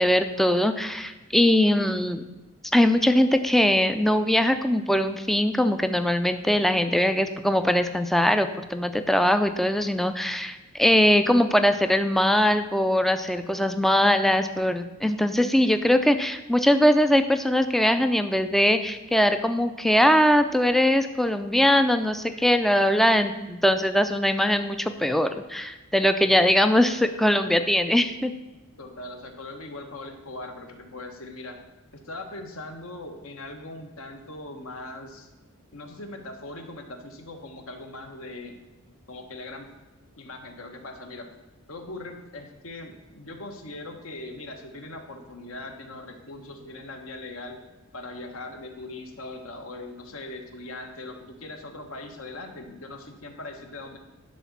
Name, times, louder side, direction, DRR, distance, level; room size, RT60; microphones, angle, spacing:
voice 1, 0.0-2.2 2.7-28.3, left 1 dB, ahead, 8 dB, 0.4 m, -21 dB
voice 2, 28.8-31.6 31.9-35.3 35.7-38.6 39.1-39.7 40.2-41.3 41.7-47.6 47.9-54.0, left 2 dB, 65° left, 4 dB, 1.3 m, -40 dB
11.0 x 4.1 x 7.3 m, 1.1 s
head